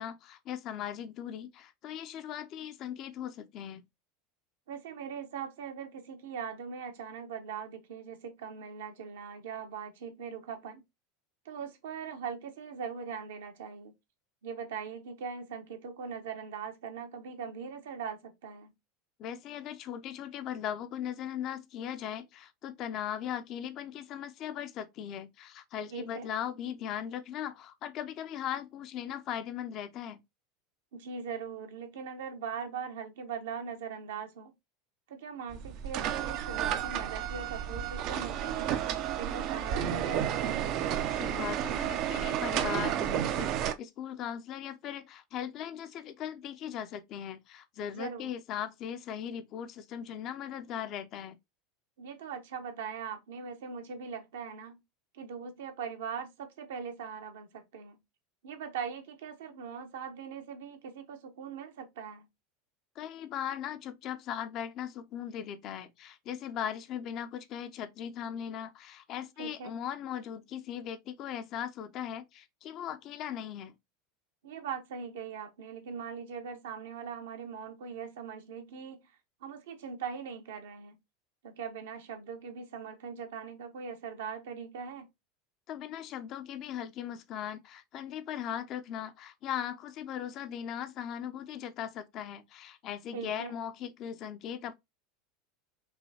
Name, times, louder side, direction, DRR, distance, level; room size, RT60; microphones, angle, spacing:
voice 1, 0.0-3.8 19.2-30.2 41.1-51.4 63.0-73.7 85.7-94.7, left 9 dB, 45° left, 0.7 m, -39 dB
voice 2, 4.7-10.8 11.4-13.9 14.4-18.7 25.9-26.3 30.9-34.5 35.1-40.7 47.9-48.3 52.0-54.8 55.1-58.0 58.4-62.3 69.4-69.8 74.4-79.1 79.4-81.0 81.4-85.1 93.1-93.5, right 6 dB, 65° right, 1.1 m, -41 dB
sound 1, 35.5-43.7, right 10 dB, 50° right, 0.6 m, -32 dB
5.6 x 3.1 x 2.8 m
figure-of-eight pair, 80°, 0 cm